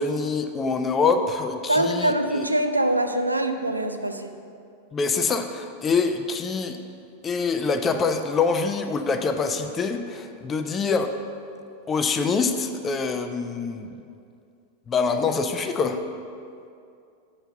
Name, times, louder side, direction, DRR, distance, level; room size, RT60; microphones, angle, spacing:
voice 1, 0.0-2.4 4.9-6.8 7.2-11.1 11.9-13.9 14.9-16.0, left 4 dB, 20° left, 7 dB, 0.5 m, -25 dB
voice 2, 1.7-4.3, right 1 dB, 85° right, 7 dB, 0.4 m, -23 dB
7.8 x 4.5 x 6.4 m, 2.5 s
figure-of-eight pair, 90°, 0 cm